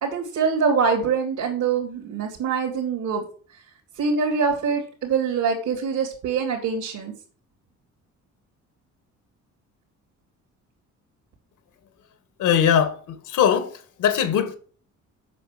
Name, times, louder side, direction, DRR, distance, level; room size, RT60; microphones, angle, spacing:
voice 1, 0.0-3.2 4.0-7.1, right 5 dB, 80° right, 2.9 m, -24 dB
voice 2, 12.4-14.6, left 9 dB, 80° left, 1.8 m, -21 dB
8.3 x 6.0 x 7.5 m
cardioid pair, 90°, 30 cm